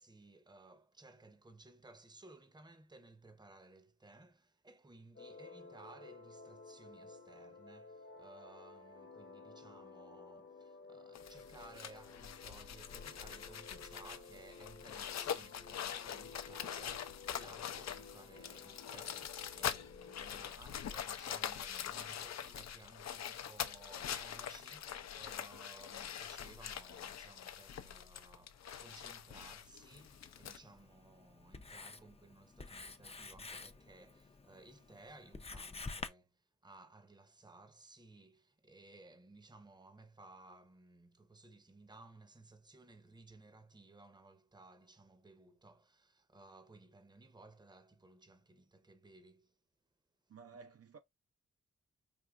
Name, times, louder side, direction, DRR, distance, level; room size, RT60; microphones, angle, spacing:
voice 1, 0.0-49.6, right 2 dB, 15° right, 0.8 m, -59 dB
sound 1, 5.1-20.5, left 4 dB, 40° left, 0.9 m, -55 dB
sound 2, 11.2-30.6, left 9 dB, 65° left, 0.5 m, -44 dB
Writing, 29.9-36.1, left 3 dB, 20° left, 0.6 m, -50 dB
voice 2, 50.3-51.0, right 5 dB, 55° right, 0.6 m, -54 dB
5.3 x 2.7 x 2.4 m
cardioid pair, 65°, 29 cm